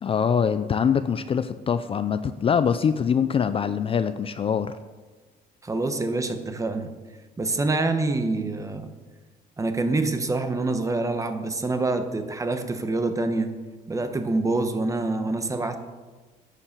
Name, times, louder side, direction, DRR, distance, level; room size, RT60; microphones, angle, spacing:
voice 1, 0.0-4.8, left 7 dB, 35° left, 11 dB, 0.5 m, -24 dB
voice 2, 5.6-6.9 7.4-8.9 9.6-13.5 13.9-15.8, right 2 dB, 20° right, 7 dB, 1.2 m, -26 dB
11.0 x 7.3 x 6.8 m, 1.3 s
cardioid pair, 110°, 17 cm